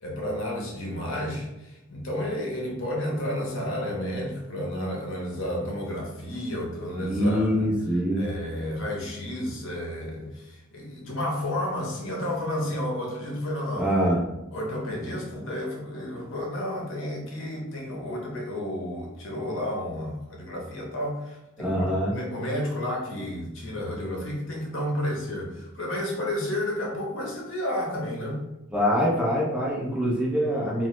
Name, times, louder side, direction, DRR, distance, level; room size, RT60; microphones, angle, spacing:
voice 1, 0.0-7.7 8.2-13.9 14.5-21.8 22.1-28.4, left 1 dB, 65° left, -2 dB, 0.8 m, -31 dB
voice 2, 7.0-8.2 13.8-14.2 21.6-22.1 28.7-30.9, equal, 5° right, -5 dB, 0.5 m, -24 dB
2.8 x 2.0 x 3.0 m, 0.92 s
head